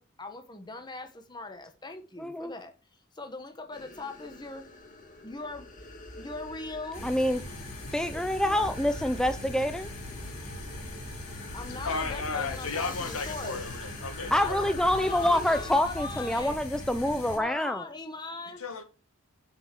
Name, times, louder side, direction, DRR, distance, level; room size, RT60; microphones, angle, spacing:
voice 1, 0.0-2.7 3.1-4.6 5.2-7.1 8.1-8.7 11.5-13.6 14.2-16.6 17.3-18.6, left 3 dB, 20° left, 1.3 m, -40 dB
voice 2, 2.2-2.5 7.0-7.4 7.9-9.9 14.3-17.8, left 1 dB, 5° left, 0.4 m, -26 dB
sound 1, 3.7-15.7, left 2 dB, 35° left, 2.0 m, -45 dB
sound 2, 6.9-17.4, left 1 dB, 90° left, 4.4 m, -41 dB
voice 3, 11.8-14.6 18.6-18.8, left 4 dB, 75° left, 1.8 m, -34 dB
7.8 x 6.4 x 6.4 m
head